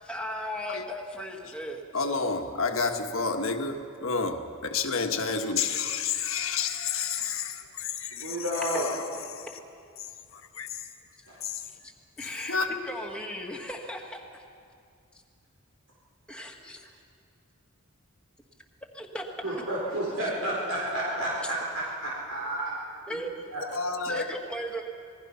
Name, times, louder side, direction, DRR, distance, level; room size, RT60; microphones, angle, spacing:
voice 1, 0.1-1.8 11.8-14.4 16.3-16.8 18.9-19.6 23.1-23.3 24.1-24.8, equal, 5° left, 0 dB, 2.0 m, -37 dB
voice 2, 1.9-8.4 8.7-8.8 9.3-9.5 10.0-10.8 11.4-11.6 12.2-12.7 23.7-24.4, left 5 dB, 70° left, 5 dB, 1.5 m, -30 dB
voice 3, 8.1-8.9 11.3-11.4 19.4-22.7 23.1-23.2 23.5-23.6, right 1 dB, 85° right, -5 dB, 4.4 m, -31 dB
27.0 x 20.0 x 5.7 m, 2.3 s
head